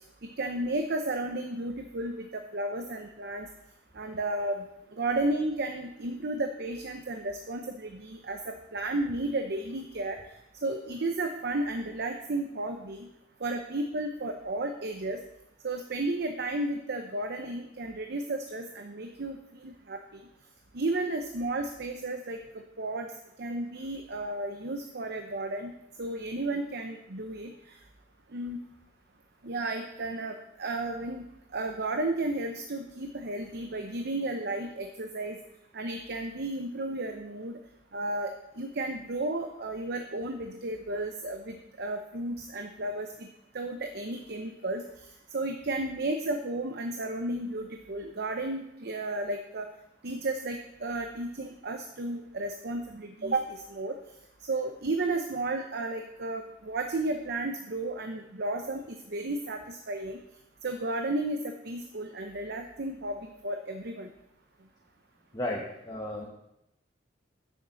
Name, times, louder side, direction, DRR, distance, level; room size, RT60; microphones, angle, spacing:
voice 1, 0.2-3.5 3.9-10.2 10.6-13.1 13.4-15.2 15.6-20.0 20.7-22.4 22.8-23.1 23.4-25.7 26.0-27.8 28.3-28.6 29.4-31.3 31.5-35.4 35.7-37.6 37.9-43.3 43.5-44.8 45.3-49.7 50.0-54.0 54.5-60.2 60.6-64.1, right 2 dB, 60° right, 5 dB, 0.8 m, -33 dB
voice 2, 65.3-66.3, left 1 dB, 20° left, -3 dB, 1.2 m, -34 dB
7.2 x 6.6 x 7.6 m, 0.84 s
head